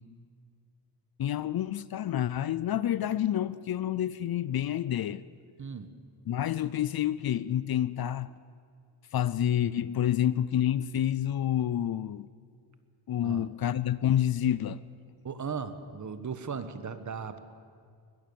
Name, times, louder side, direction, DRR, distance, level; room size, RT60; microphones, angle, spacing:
voice 1, 1.2-5.2 6.3-8.3 9.1-12.3 13.1-14.8, left 11 dB, 50° left, 0.5 m, -28 dB
voice 2, 15.2-17.4, right 6 dB, 40° right, 1.3 m, -37 dB
22.0 x 20.0 x 7.0 m
cardioid pair, 125°, 47 cm